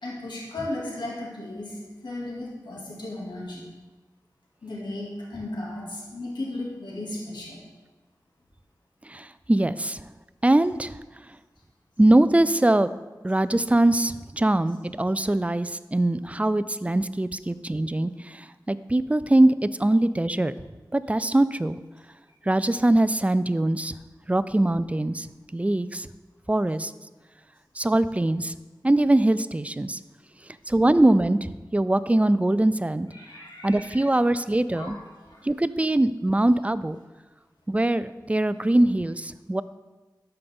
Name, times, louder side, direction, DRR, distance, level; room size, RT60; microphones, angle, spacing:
voice 1, 0.0-3.6 4.6-7.6 16.2-16.3 33.1-34.0 34.3-35.0 35.3-35.4, left 2 dB, 80° left, -5 dB, 2.3 m, -36 dB
voice 2, 9.0-10.1 10.4-11.0 12.0-12.9 13.2-20.5 20.9-21.8 22.5-23.9 24.3-25.3 25.5-26.1 26.5-26.9 27.8-28.5 28.8-30.0 30.7-33.1 33.6-35.0 35.4-37.0 37.7-39.6, right 1 dB, 20° right, 14 dB, 0.4 m, -22 dB
12.5 x 5.3 x 3.6 m, 1.2 s
wide cardioid pair, 50°, 8 cm